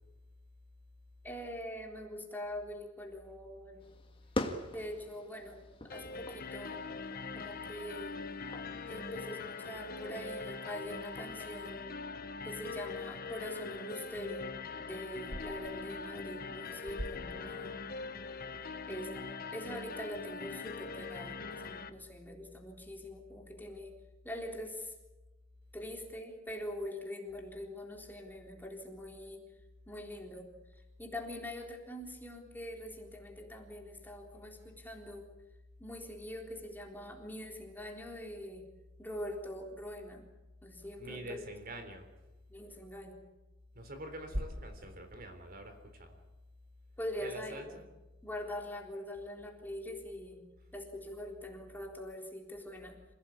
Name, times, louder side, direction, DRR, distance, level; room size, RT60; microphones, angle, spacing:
voice 1, 1.2-3.9 4.7-6.8 7.3-8.2 8.8-11.9 12.4-17.7 18.9-24.0 24.2-24.9 25.7-29.5 29.9-30.5 31.0-35.3 35.8-38.7 39.0-40.3 40.6-41.6 42.5-43.2 47.0-47.9 48.2-53.0, left 1 dB, 10° left, 1 dB, 3.8 m, -43 dB
sound 1, 3.8-11.7, left 1 dB, 25° left, 2.0 m, -45 dB
sound 2, 5.9-21.9, left 4 dB, 50° left, 1.4 m, -42 dB
voice 2, 41.0-42.1 43.8-46.2 47.2-47.8, equal, 50° right, 7 dB, 3.7 m, -43 dB
27.0 x 17.5 x 8.7 m, 1.1 s
head